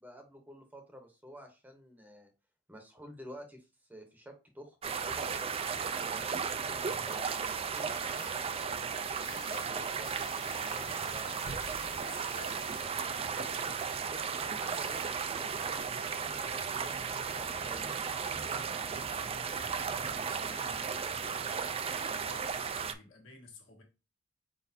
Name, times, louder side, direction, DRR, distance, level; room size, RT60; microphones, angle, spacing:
voice 1, 0.0-2.3 2.7-6.4 7.1-12.0 14.6-18.6, equal, 10° right, 0.9 m, -51 dB
sound 1, 4.8-22.9, right 6 dB, 30° right, 0.4 m, -35 dB
sound 2, 8.1-8.3 9.2-9.7 10.0-12.9, left 11 dB, 45° left, 0.4 m, -52 dB
sound 3, 11.5-13.5, right 2 dB, 55° right, 1.0 m, -50 dB
voice 2, 12.0-14.0 15.8-16.0 19.4-23.8, left 1 dB, 70° left, 1.6 m, -53 dB
4.6 x 4.1 x 2.7 m
head